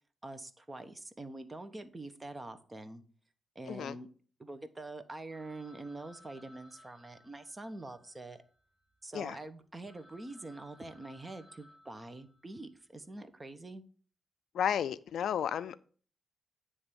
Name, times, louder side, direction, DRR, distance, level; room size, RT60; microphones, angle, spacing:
voice 1, 0.2-3.0 3.5-4.1 4.4-8.4 9.0-13.8, right 2 dB, 25° right, 10 dB, 1.1 m, -45 dB
Telephone, 5.3-9.1 9.6-9.7 9.9-12.7, left 1 dB, 10° left, 3.9 m, -61 dB
voice 2, 14.5-15.8, left 9 dB, 80° left, 16 dB, 0.4 m, -32 dB
9.4 x 3.4 x 6.9 m, 0.42 s
cardioid pair, 65°, 0 cm